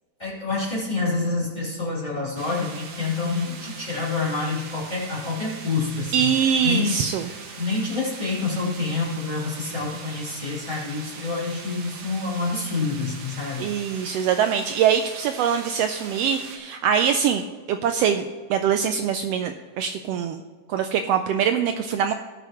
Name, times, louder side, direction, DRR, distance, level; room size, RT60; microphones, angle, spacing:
voice 1, 0.2-6.3 6.6-6.9 7.6-13.7, left 3 dB, 15° left, -7 dB, 3.0 m, -27 dB
sound 1, 2.4-16.6, right 5 dB, 70° right, 2.4 m, -41 dB
voice 2, 6.1-7.3 13.6-20.4 20.7-22.1, right 8 dB, 90° right, 7 dB, 1.4 m, -23 dB
18.0 x 7.1 x 3.0 m, 1.5 s
omnidirectional pair, 3.4 m